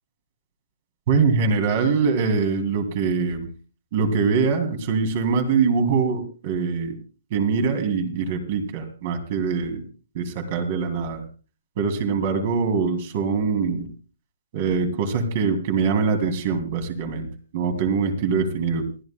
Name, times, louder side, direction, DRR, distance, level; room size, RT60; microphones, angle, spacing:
voice 1, 1.1-3.5 3.9-7.0 7.3-9.8 10.1-11.2 11.8-13.9 14.5-18.9, right 5 dB, 35° right, 6 dB, 2.7 m, -23 dB
28.5 x 11.0 x 2.2 m, 0.35 s
hypercardioid pair, 165°, 0 cm